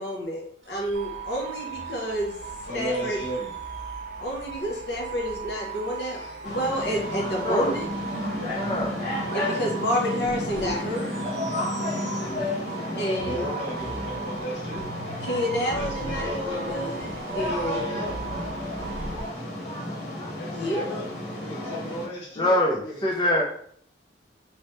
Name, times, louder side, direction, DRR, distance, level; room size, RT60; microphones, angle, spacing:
voice 1, 0.0-2.4 2.7-3.3 4.2-7.9 9.3-11.1 13.0-13.5 15.2-18.0 20.5-21.0, equal, 60° left, -2 dB, 0.8 m, -29 dB
sound 1, 0.6-12.9 13.2-19.2, right 1 dB, 70° right, 0.8 m, -43 dB
sound 2, 0.9-19.3, right 6 dB, 40° right, 0.4 m, -38 dB
voice 2, 2.6-3.5 6.0-6.4 9.5-9.6 13.2-14.9 15.7-16.7 17.4-18.2 20.3-21.1 21.4-23.1, equal, 80° left, -5 dB, 1.4 m, -35 dB
sound 3, 6.4-22.1, left 1 dB, 40° left, 1.2 m, -32 dB
voice 3, 7.4-7.8 8.5-8.9 12.0-12.4 12.8-12.9 15.1-15.4 18.7-18.8 19.1-19.3 19.6-20.9 22.4-23.4, left 1 dB, 25° left, -2 dB, 0.4 m, -27 dB
3.1 x 3.1 x 3.0 m, 0.63 s
head